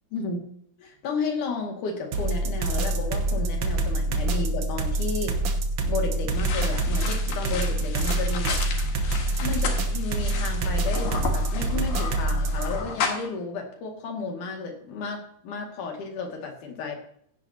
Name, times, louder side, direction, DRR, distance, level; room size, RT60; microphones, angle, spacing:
voice 1, 0.8-5.4 5.8-8.6 9.4-17.0, left 4 dB, 70° left, 2 dB, 3.6 m, -32 dB
sound 1, 2.1-12.8, right 2 dB, 60° right, 1.6 m, -26 dB
sound 2, 6.3-13.3, left 5 dB, 90° left, 3.3 m, -33 dB
16.0 x 11.0 x 2.8 m, 0.67 s
omnidirectional pair, 3.8 m